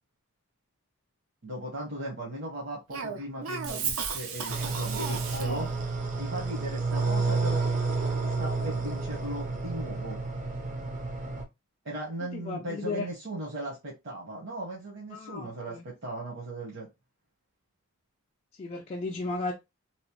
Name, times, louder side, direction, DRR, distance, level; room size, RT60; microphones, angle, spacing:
voice 1, 1.4-5.7 6.2-7.6 8.4-10.2 11.8-16.9, right 1 dB, 60° right, 0.9 m, -37 dB
Cough, 2.9-5.8, right 5 dB, 80° right, 0.5 m, -34 dB
sound 1, 4.5-11.4, right 3 dB, 35° right, 0.5 m, -30 dB
voice 2, 12.3-13.1 15.1-15.8 18.6-19.5, left 3 dB, 30° left, 0.3 m, -34 dB
2.9 x 2.0 x 2.9 m
head